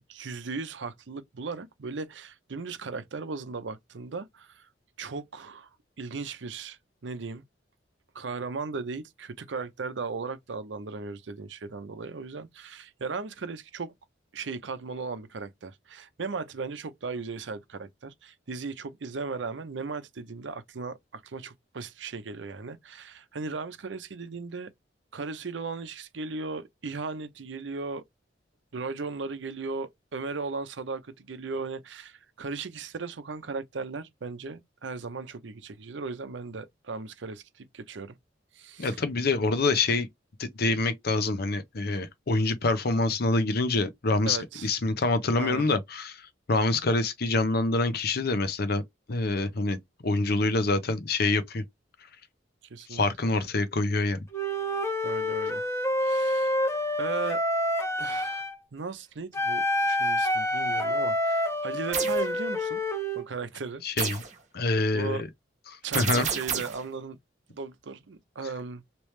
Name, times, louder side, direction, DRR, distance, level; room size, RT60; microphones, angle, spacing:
voice 1, 0.1-4.7 5.0-5.7 6.0-7.4 8.1-13.9 14.3-24.7 25.1-28.0 28.7-38.2 38.5-39.0 44.2-44.7 45.4-45.7 52.7-53.4 55.0-55.7 56.0-56.6 57.0-57.4 58.0-58.4 58.7-62.8 63.2-63.8 64.9-65.2 65.8-67.2 67.5-68.8, right 4 dB, 75° right, 0.6 m, -37 dB
voice 2, 38.8-40.1 40.4-48.8 49.1-49.8 50.0-51.6 52.9-54.2 63.8-64.2 64.5-65.3 65.9-66.3, left 3 dB, 60° left, 0.7 m, -26 dB
Wind instrument woodwind instrument, 54.3-58.6 59.3-63.2, left 1 dB, 15° left, 0.7 m, -27 dB
sound 1, 61.9-62.2 64.0-64.3 65.9-66.9, right 7 dB, 40° right, 1.1 m, -30 dB
3.2 x 2.9 x 3.1 m
head